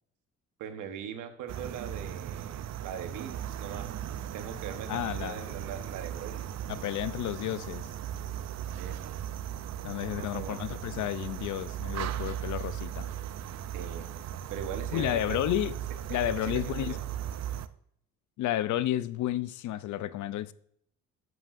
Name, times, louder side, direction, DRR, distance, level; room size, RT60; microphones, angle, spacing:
voice 1, 0.6-3.9 4.3-6.5 8.8-9.1 10.2-10.6 13.7-14.1 14.5-15.4 16.1-17.0, right 8 dB, 85° right, 1.2 m, -41 dB
sound 1, 1.5-17.7, right 10 dB, 60° right, 0.6 m, -37 dB
voice 2, 4.9-5.5 6.7-7.9 9.8-13.1 14.9-15.8 16.1-17.0 18.4-20.5, left 13 dB, 75° left, 0.6 m, -31 dB
10.5 x 7.8 x 2.6 m
cardioid pair, 90°, 30 cm